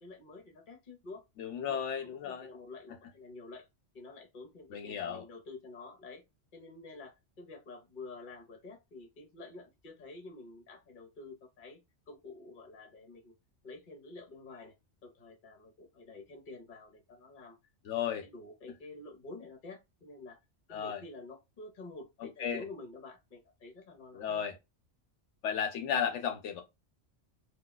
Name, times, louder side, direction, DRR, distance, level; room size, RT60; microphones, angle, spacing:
voice 1, 0.0-1.2 1.7-3.7 3.9-6.2 6.5-11.8 12.1-13.3 13.6-14.7 15.0-17.6 18.0-20.4 20.7-24.5, left 3 dB, 50° left, 1.0 m, -49 dB
voice 2, 1.4-2.5 4.7-5.2 17.8-18.2 20.7-21.0 22.2-22.6 24.1-24.6 25.4-26.6, left 8 dB, 80° left, 0.9 m, -34 dB
2.3 x 2.2 x 3.8 m
omnidirectional pair, 1.2 m